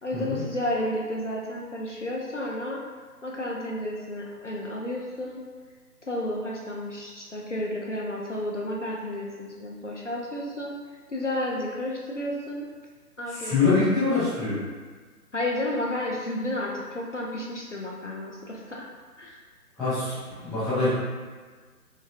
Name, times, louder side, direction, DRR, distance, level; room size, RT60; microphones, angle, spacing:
voice 1, 0.0-2.8 3.2-5.4 6.0-10.7 11.1-12.7 13.2-13.7 15.3-18.9 19.2-19.4, left 1 dB, 50° left, -3 dB, 0.5 m, -32 dB
voice 2, 13.3-14.6 19.8-20.1 20.4-20.9, left 3 dB, ahead, -17 dB, 0.5 m, -24 dB
4.9 x 2.2 x 2.7 m, 1.5 s
figure-of-eight pair, 150°, 48 cm